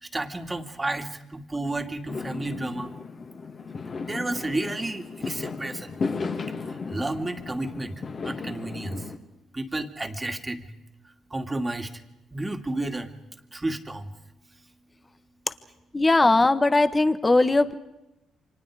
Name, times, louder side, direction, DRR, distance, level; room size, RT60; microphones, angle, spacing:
voice 1, 0.0-3.0 4.0-6.0 6.5-9.1 9.5-10.7 11.0-12.0 12.3-13.1 13.5-14.1, right 2 dB, 20° right, 6 dB, 2.4 m, -32 dB
Fireworks, 2.1-9.2, left 4 dB, 45° left, 2.6 m, -35 dB
voice 2, 15.9-17.7, left 2 dB, 20° left, 11 dB, 1.4 m, -19 dB
29.5 x 25.5 x 5.0 m, 0.93 s
cardioid pair, 90°, 0 cm